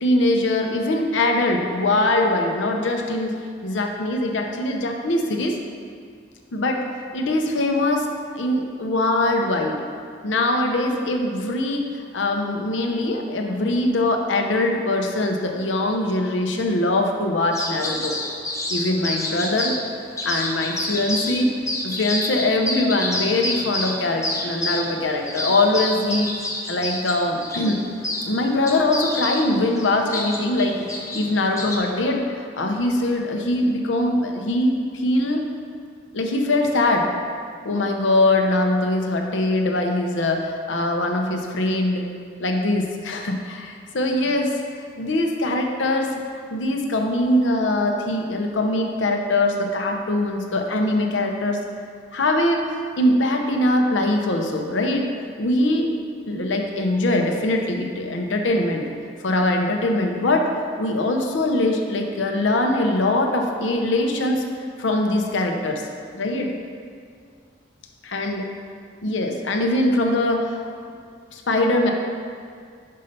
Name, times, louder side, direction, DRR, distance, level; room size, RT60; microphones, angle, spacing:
voice 1, 0.0-3.3 3.6-5.6 6.5-9.8 10.2-18.2 18.7-19.8 20.2-21.5 21.8-26.3 26.7-27.9 28.3-30.9 31.1-35.4 36.1-37.1 37.6-42.1 42.4-46.1 46.5-51.6 52.1-52.6 53.0-55.1 55.4-55.9 56.3-58.8 59.2-60.5 60.8-64.5 64.8-65.8 66.1-66.5 68.1-68.5 69.0-70.7 71.3-71.9, left 2 dB, 80° left, 2 dB, 0.7 m, -22 dB
sound 1, 17.5-19.8 20.2-21.4 21.7-28.3 28.7-31.8, left 1 dB, 15° left, 0.9 m, -28 dB
5.5 x 5.4 x 5.2 m, 2.2 s
head